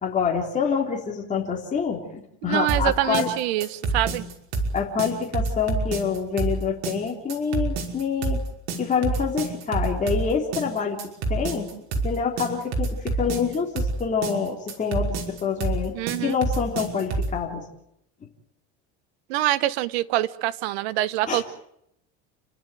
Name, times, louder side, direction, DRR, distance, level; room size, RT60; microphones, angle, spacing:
voice 1, 0.0-3.4 4.7-8.4 8.8-11.0 11.3-11.7 12.0-15.9 16.2-17.6 21.3-21.4, left 6 dB, 25° left, -1 dB, 3.7 m, -26 dB
voice 2, 2.4-4.2 15.9-16.4 19.3-21.4, right 15 dB, 85° right, 15 dB, 1.2 m, -25 dB
sound 1, 2.7-17.4, right 3 dB, 55° right, 5.7 m, -27 dB
30.0 x 12.0 x 9.1 m, 0.76 s
cardioid pair, 130°, 31 cm